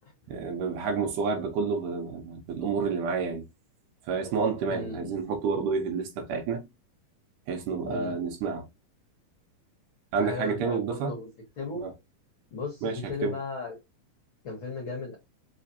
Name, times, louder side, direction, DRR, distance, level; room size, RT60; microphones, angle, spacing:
voice 1, 0.3-3.5 4.1-6.7 7.5-8.7 10.1-11.1 11.8-11.9 12.8-13.4, right 5 dB, 85° right, 2.2 m, -29 dB
voice 2, 4.7-5.2 7.9-8.2 10.1-11.3 11.6-11.8 12.5-13.7 14.4-15.2, left 4 dB, 65° left, 1.2 m, -36 dB
4.8 x 3.3 x 2.7 m
omnidirectional pair, 3.6 m